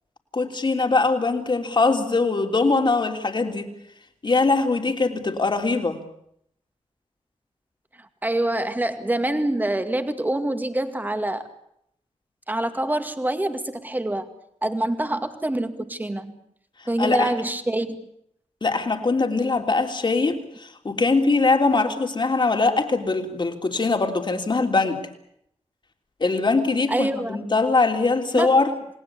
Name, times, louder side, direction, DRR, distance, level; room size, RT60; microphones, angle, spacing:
voice 1, 0.3-3.7 4.2-6.0 17.0-17.3 18.6-25.0 26.2-28.7, left 3 dB, 40° left, 4 dB, 3.4 m, -22 dB
voice 2, 8.0-11.5 12.5-14.3 14.6-16.4 16.9-18.0 26.9-27.4 28.3-28.5, right 1 dB, 15° right, 8 dB, 2.1 m, -26 dB
28.5 x 19.5 x 8.4 m, 0.72 s
wide cardioid pair, 120°, 12 cm